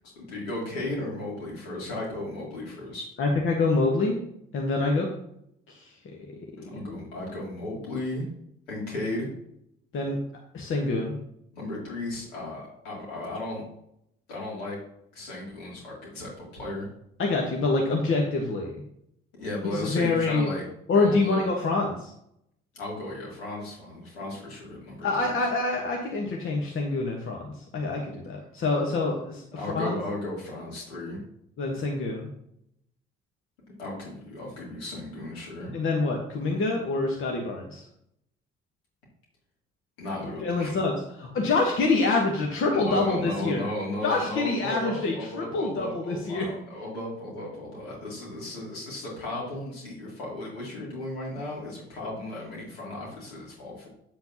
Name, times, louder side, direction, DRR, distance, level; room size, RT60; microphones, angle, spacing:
voice 1, 0.0-3.1 6.6-8.3 8.7-9.3 11.5-13.6 14.3-14.8 15.1-16.9 19.4-20.6 20.9-21.5 22.7-25.4 29.6-31.2 33.8-35.7 40.0-40.8 42.7-53.9, left 1 dB, 70° left, -4 dB, 3.1 m, -35 dB
voice 2, 3.2-4.2 4.5-5.1 5.7-5.9 6.6-7.0 9.9-10.2 10.5-11.1 17.2-18.8 19.6-20.5 20.9-22.1 25.0-30.0 31.6-32.3 35.7-37.8 40.2-43.6 44.0-46.5, left 3 dB, 40° left, 0 dB, 1.4 m, -26 dB
8.8 x 7.6 x 2.9 m, 0.75 s
figure-of-eight pair, 45°, 31 cm